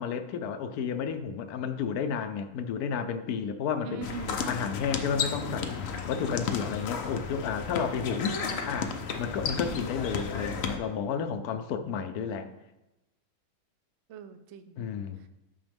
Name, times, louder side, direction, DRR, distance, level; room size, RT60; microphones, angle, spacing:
voice 1, 0.0-4.1 4.5-5.8 6.1-12.5 14.8-15.3, left 6 dB, 80° left, 9 dB, 1.1 m, -32 dB
voice 2, 3.8-4.4 8.3-8.7 11.8-12.6 14.1-14.8, right 7 dB, 65° right, 9 dB, 0.7 m, -43 dB
sound 1, 4.0-10.8, left 5 dB, 60° left, 0.7 m, -33 dB
9.1 x 5.1 x 3.5 m, 0.97 s
omnidirectional pair, 1.6 m